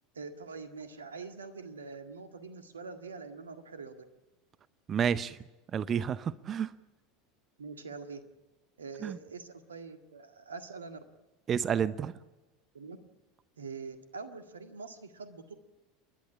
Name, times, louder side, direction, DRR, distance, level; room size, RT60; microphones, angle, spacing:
voice 1, 0.1-4.0 7.6-8.2 8.8-11.0 12.7-13.0 13.6-15.5, right 4 dB, 80° right, 7 dB, 1.8 m, -44 dB
voice 2, 4.9-5.4 5.7-6.7 9.0-9.2 11.5-12.1, right 8 dB, 35° right, 16 dB, 0.7 m, -30 dB
29.5 x 11.5 x 9.7 m, 1.1 s
figure-of-eight pair, 80°, 0 cm